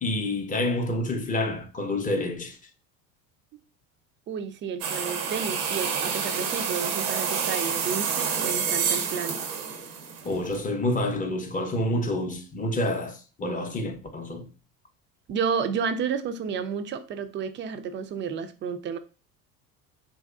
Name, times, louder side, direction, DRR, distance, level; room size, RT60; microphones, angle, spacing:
voice 1, 0.0-2.6 10.2-14.5, left 1 dB, 20° left, 0.6 m, -28 dB
voice 2, 4.3-9.4 15.3-19.0, right 6 dB, 30° right, 0.4 m, -31 dB
sound 1, 4.8-10.6, right 6 dB, 80° right, 0.7 m, -28 dB
3.0 x 2.7 x 2.3 m
hypercardioid pair, 80°, 43 cm